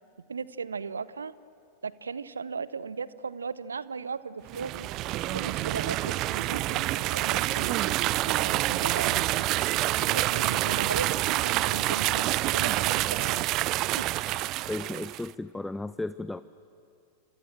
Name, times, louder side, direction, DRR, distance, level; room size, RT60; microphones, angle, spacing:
voice 1, 0.3-1.3 1.8-4.9 5.3-9.6 10.0-13.6 14.0-14.1, right 5 dB, 75° right, 18 dB, 0.8 m, -37 dB
sound 1, 4.5-15.3, right 17 dB, 40° right, 0.5 m, -27 dB
voice 2, 14.7-16.4, left 2 dB, 5° left, 15 dB, 0.6 m, -34 dB
30.0 x 26.0 x 7.6 m, 2.7 s
figure-of-eight pair, 90°, 0 cm